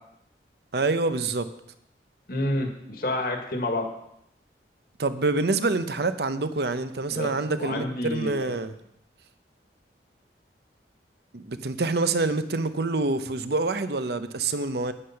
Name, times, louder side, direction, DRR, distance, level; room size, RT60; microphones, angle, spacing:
voice 1, 0.7-1.5 5.0-8.7 11.3-14.9, right 3 dB, 65° right, 11 dB, 0.8 m, -26 dB
voice 2, 2.3-3.9 7.1-7.3 7.6-8.6, left 1 dB, 55° left, 3 dB, 1.7 m, -29 dB
9.9 x 9.6 x 5.8 m, 0.78 s
head